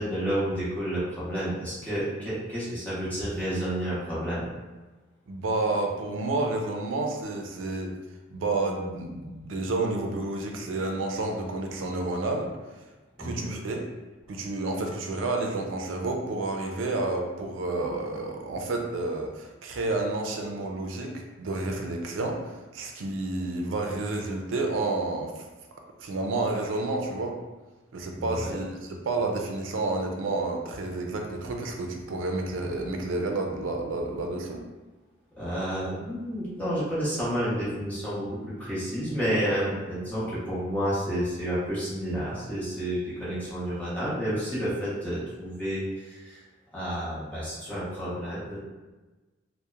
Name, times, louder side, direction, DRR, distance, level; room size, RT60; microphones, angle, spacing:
voice 1, 0.0-4.5 13.2-13.5 28.1-28.5 35.4-38.3 38.6-46.4 46.7-48.6, equal, 10° left, -10 dB, 0.9 m, -30 dB
voice 2, 5.3-7.9 8.3-12.5 13.2-13.8 14.3-25.4 26.0-27.3 27.9-34.6, right 2 dB, 90° right, 2 dB, 0.4 m, -30 dB
2.8 x 2.0 x 2.3 m, 1.2 s
head